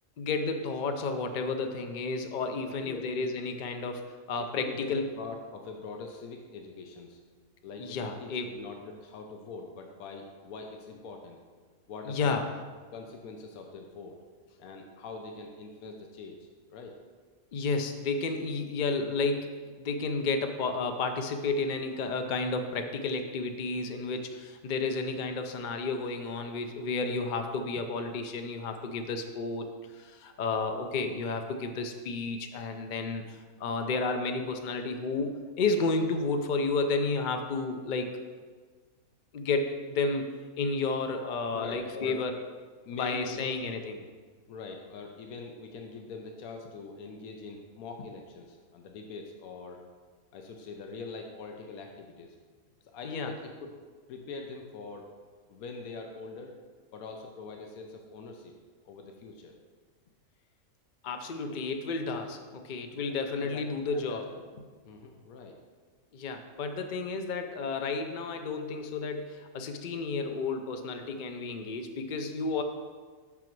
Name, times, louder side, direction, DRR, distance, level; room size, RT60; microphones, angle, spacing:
voice 1, 0.2-5.1 7.8-8.5 12.1-12.4 17.5-19.5 19.8-38.2 39.3-40.3 40.6-42.3 43.0-44.0 53.0-53.3 61.0-64.3 66.1-72.6, left 3 dB, 70° left, 6 dB, 0.4 m, -32 dB
voice 2, 2.6-3.3 4.4-7.2 7.6-11.4 11.9-12.5 12.9-14.2 14.6-16.9 41.5-42.2 42.8-43.6 44.5-49.8 50.3-52.4 52.8-53.7 54.1-55.1 55.5-56.5 56.9-58.5 58.8-59.5 61.5-61.6 62.9-64.5 64.8-65.6, left 4 dB, 90° left, 3 dB, 1.2 m, -43 dB
6.0 x 5.6 x 4.5 m, 1.5 s
omnidirectional pair, 1.5 m